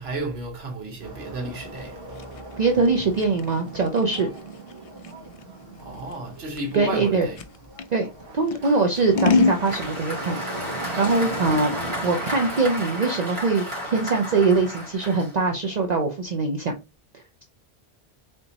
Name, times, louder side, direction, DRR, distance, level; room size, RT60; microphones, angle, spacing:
voice 1, 0.0-2.2 5.8-7.4, right 1 dB, 90° right, 1.4 m, -33 dB
sound 1, 1.0-14.9, right 2 dB, 65° right, 1.2 m, -39 dB
Scissors, 1.8-7.9 8.5-9.6, left 4 dB, 55° left, 0.4 m, -27 dB
voice 2, 2.6-4.3 6.7-7.3 7.9-8.1 8.3-11.7 12.0-13.7 13.9-16.7 17.1-17.4, right 4 dB, 50° right, 0.7 m, -23 dB
Applause, 8.6-15.7, equal, 30° right, 2.0 m, -33 dB
4.0 x 3.6 x 2.9 m
omnidirectional pair, 1.0 m